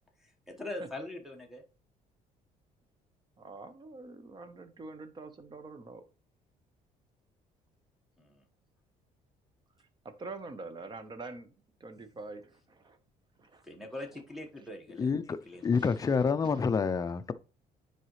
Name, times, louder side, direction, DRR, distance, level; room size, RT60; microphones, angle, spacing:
voice 1, 0.2-1.6 8.2-8.4 13.6-15.1 15.4-15.7 16.0-16.1, left 1 dB, ahead, 1.2 m, -42 dB
voice 2, 3.4-6.0 10.0-11.5 11.8-13.0 13.4-13.6 15.8-16.0 16.4-16.6, right 3 dB, 30° right, 1.0 m, -45 dB
voice 3, 15.0-17.3, left 5 dB, 25° left, 0.4 m, -28 dB
9.0 x 4.8 x 3.1 m
cardioid pair, 115°, 15 cm